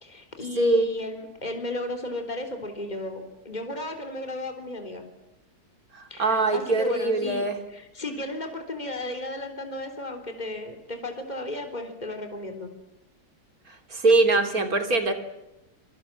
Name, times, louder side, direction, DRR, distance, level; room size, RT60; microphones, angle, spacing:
voice 1, 0.0-5.1 6.1-12.7, left 1 dB, 25° left, 6 dB, 3.8 m, -34 dB
voice 2, 0.6-0.9 5.9-7.6 13.7-15.1, right 2 dB, 65° right, 6 dB, 3.8 m, -22 dB
27.5 x 24.5 x 7.5 m, 0.95 s
omnidirectional pair, 1.7 m